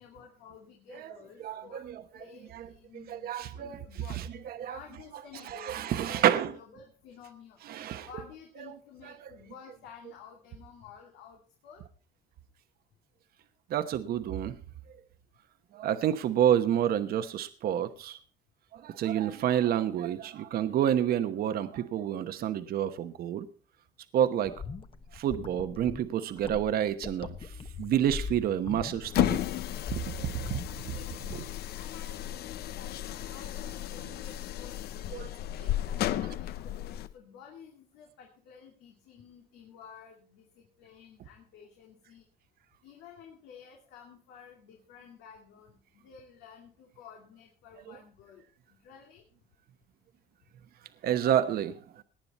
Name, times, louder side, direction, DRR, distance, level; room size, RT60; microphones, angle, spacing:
voice 1, 0.0-1.9 2.1-4.2 4.6-7.6 8.0-11.8 30.6-34.8 35.0-35.3 35.9-42.2 42.8-49.2, left 7 dB, 90° left, 2.6 m, -52 dB
voice 2, 1.4-1.9 2.5-2.6 2.9-3.8 4.5-4.8 5.5-6.5 7.7-8.1 9.1-9.3 13.7-14.6 15.7-18.2 18.7-23.5 24.1-24.6 25.1-27.3 27.8-29.4 29.9-30.6 31.3-31.4 35.1-35.3 35.6-35.7 51.0-51.8, right 10 dB, 65° right, 1.1 m, -29 dB
sound 1, 24.5-31.0, left 5 dB, 30° left, 1.1 m, -41 dB
sound 2, 29.0-37.1, left 12 dB, 70° left, 0.6 m, -33 dB
18.0 x 9.6 x 4.2 m
cardioid pair, 110°, 17 cm